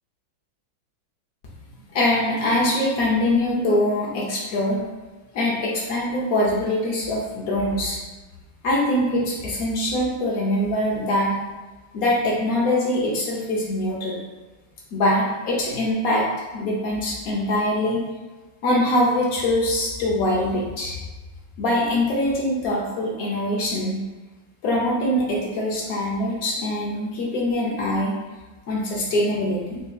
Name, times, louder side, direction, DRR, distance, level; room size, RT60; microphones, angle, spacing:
voice 1, 1.9-4.8 5.3-8.0 8.6-11.4 11.9-14.2 14.9-18.0 18.6-21.0 21.6-24.0 24.6-28.1 28.7-29.8, left 1 dB, 70° left, -4 dB, 0.9 m, -23 dB
4.1 x 2.7 x 2.3 m, 1.2 s
omnidirectional pair, 2.1 m